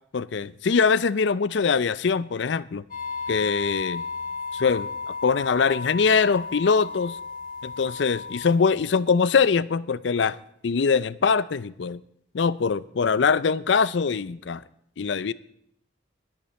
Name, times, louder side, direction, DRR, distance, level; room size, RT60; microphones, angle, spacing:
voice 1, 0.1-2.8 3.3-4.0 4.5-7.2 7.6-10.4 10.6-12.0 12.3-14.6 15.0-15.3, left 5 dB, 70° left, 0.5 m, -23 dB
sound 1, 2.9-8.5, left 4 dB, 45° left, 2.1 m, -34 dB
20.5 x 8.9 x 4.2 m
head